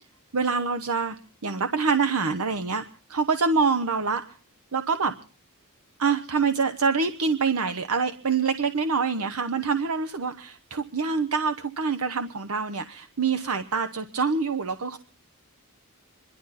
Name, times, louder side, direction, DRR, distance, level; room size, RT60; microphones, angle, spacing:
voice 1, 0.3-1.2 1.4-4.4 4.7-5.1 6.0-15.0, right 5 dB, 75° right, 9 dB, 0.9 m, -25 dB
26.5 x 12.0 x 4.2 m, 0.41 s
head